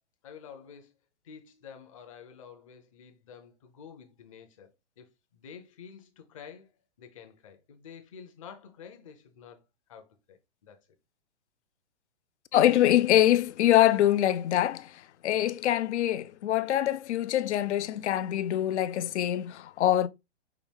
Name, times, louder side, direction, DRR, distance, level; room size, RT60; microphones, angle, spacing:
voice 1, 0.2-0.9 1.2-4.7 5.0-10.8, left 7 dB, 30° left, 0.7 m, -49 dB
voice 2, 12.5-20.1, left 12 dB, 75° left, 0.5 m, -24 dB
5.8 x 2.4 x 3.4 m
hypercardioid pair, 170°, 34 cm